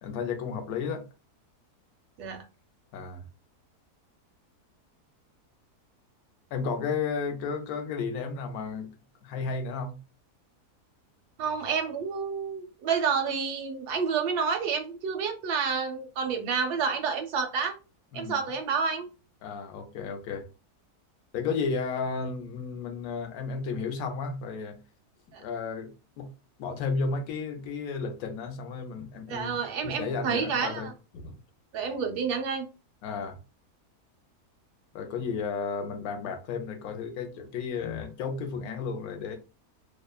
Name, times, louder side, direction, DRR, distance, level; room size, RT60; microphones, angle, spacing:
voice 1, 0.0-1.1 2.9-3.2 6.5-8.9 9.2-10.0 18.1-18.4 19.4-20.5 21.3-24.8 25.4-26.3 26.6-31.4 33.0-33.4 34.9-39.4, left 5 dB, 75° left, 1.0 m, -33 dB
voice 2, 11.4-17.8 18.1-19.1 25.3-25.4 29.3-30.9 31.7-32.7, right 6 dB, 85° right, 1.2 m, -29 dB
2.9 x 2.1 x 2.2 m
omnidirectional pair, 1.7 m